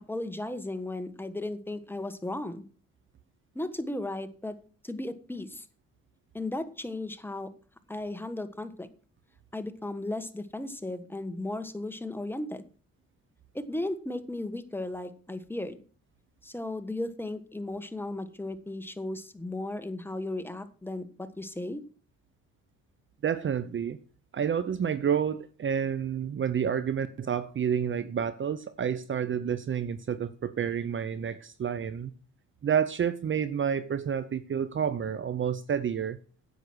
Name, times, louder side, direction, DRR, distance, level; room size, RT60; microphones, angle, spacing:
voice 1, 0.1-2.6 3.5-4.5 4.8-5.6 6.3-7.5 7.9-8.9 9.5-12.6 13.5-15.8 16.4-21.8, left 2 dB, 5° left, 9 dB, 1.4 m, -35 dB
voice 2, 23.2-24.0 24.3-32.1 32.6-36.2, right 8 dB, 40° right, 14 dB, 0.8 m, -29 dB
10.0 x 8.2 x 6.2 m, 0.40 s
cardioid pair, 90°, 30 cm